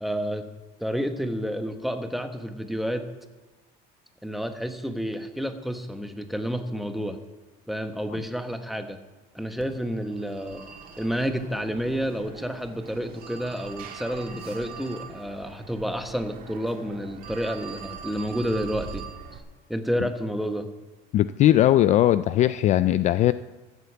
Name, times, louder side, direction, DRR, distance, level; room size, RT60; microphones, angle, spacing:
voice 1, 0.0-0.5 0.8-3.0 4.2-7.2 7.7-9.0 9.3-10.7 11.0-19.0 19.7-20.7, equal, ahead, 7 dB, 1.0 m, -30 dB
Telephone, 9.6-19.4, right 6 dB, 50° right, 2.0 m, -42 dB
voice 2, 21.1-23.3, left 13 dB, 40° left, 14 dB, 0.4 m, -19 dB
14.5 x 8.1 x 8.3 m, 1.2 s
cardioid pair, 155°, 18 cm